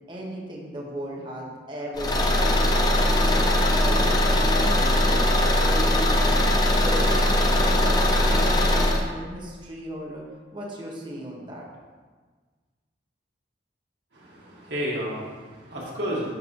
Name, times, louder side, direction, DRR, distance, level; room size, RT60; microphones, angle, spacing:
voice 1, 0.1-2.9 3.4-6.2 6.8-7.2 7.6-10.2 10.5-11.6, right 1 dB, 25° right, -3 dB, 1.1 m, -36 dB
Car / Engine, 2.0-9.0, left 1 dB, 25° left, 0.6 m, -20 dB
voice 2, 14.1-16.3, equal, 70° right, -5 dB, 1.9 m, -31 dB
10.5 x 3.8 x 3.2 m, 1.4 s
head